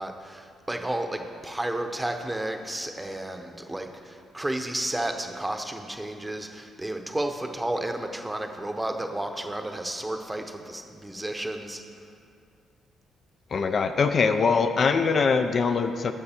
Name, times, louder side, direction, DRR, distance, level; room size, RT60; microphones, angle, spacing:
voice 1, 0.0-11.8, right 1 dB, 10° right, 5 dB, 0.7 m, -32 dB
voice 2, 13.5-16.1, left 5 dB, 50° left, 8 dB, 0.4 m, -22 dB
13.5 x 5.1 x 4.3 m, 2.3 s
cardioid pair, 90°, 0 cm